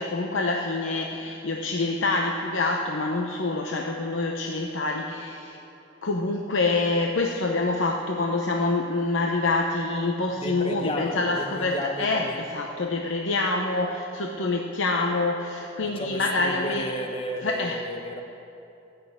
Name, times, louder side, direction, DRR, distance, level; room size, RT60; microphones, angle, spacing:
voice 1, 0.0-5.6 6.0-16.9 17.4-17.8, left 3 dB, 75° left, 1 dB, 0.8 m, -26 dB
voice 2, 10.4-12.4 15.8-18.2, left 1 dB, 30° left, 5 dB, 0.9 m, -33 dB
15.5 x 6.5 x 8.6 m, 2.8 s
head